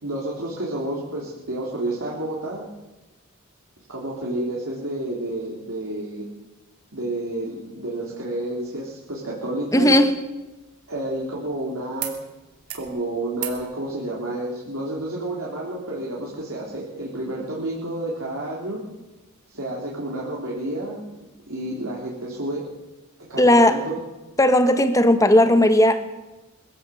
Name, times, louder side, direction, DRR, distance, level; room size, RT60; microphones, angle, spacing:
voice 1, 0.0-2.6 3.9-6.2 6.9-9.9 10.9-12.1 12.7-18.8 19.5-21.0 21.5-22.6 23.3-24.0, right 1 dB, 70° right, -4 dB, 3.5 m, -30 dB
voice 2, 9.7-10.1 23.4-23.8 24.4-26.2, left 1 dB, 15° left, 9 dB, 1.3 m, -16 dB
sound 1, 9.8-11.6 12.0-12.2 12.5-12.9 13.3-13.6 15.0-15.1, right 11 dB, 85° right, 2.8 m, -37 dB
22.0 x 15.5 x 7.7 m, 1.1 s
head